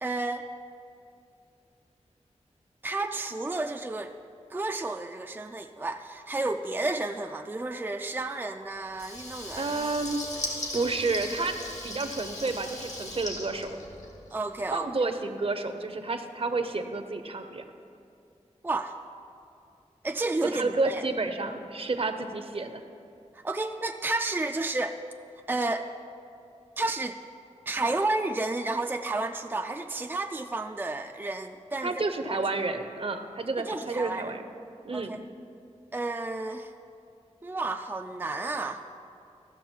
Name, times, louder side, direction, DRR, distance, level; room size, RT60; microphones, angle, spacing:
voice 1, 0.0-0.5 2.8-4.1 4.5-9.9 14.3-14.9 18.6-19.0 20.0-21.0 23.3-25.0 25.5-25.9 26.8-27.2 27.7-31.9 32.3-32.4 33.6-34.2 34.9-35.2 35.9-36.7 37.4-38.8, right 2 dB, 15° right, 5 dB, 0.4 m, -31 dB
Water tap faucet / Liquid, 8.9-14.4, left 2 dB, 75° left, 1.8 m, -38 dB
voice 2, 9.6-10.3 10.7-13.8 14.7-17.6 20.5-22.8 31.8-34.4 34.8-35.2, right 3 dB, 50° right, 7 dB, 0.7 m, -30 dB
14.5 x 6.4 x 4.5 m, 2.5 s
wide cardioid pair, 60°, 12 cm